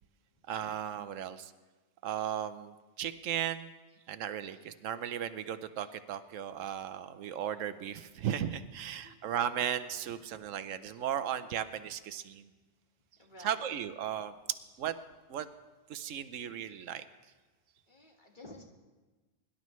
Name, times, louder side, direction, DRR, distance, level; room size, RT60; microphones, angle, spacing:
voice 1, 0.5-1.5 2.0-3.7 4.1-12.5 13.4-14.3 14.8-15.0 15.3-15.5 15.9-17.0, right 9 dB, 85° right, 11 dB, 1.0 m, -36 dB
voice 2, 13.1-13.8 17.9-18.6, left 2 dB, 40° left, 0 dB, 1.7 m, -52 dB
23.0 x 11.5 x 3.1 m, 1.2 s
omnidirectional pair, 1.3 m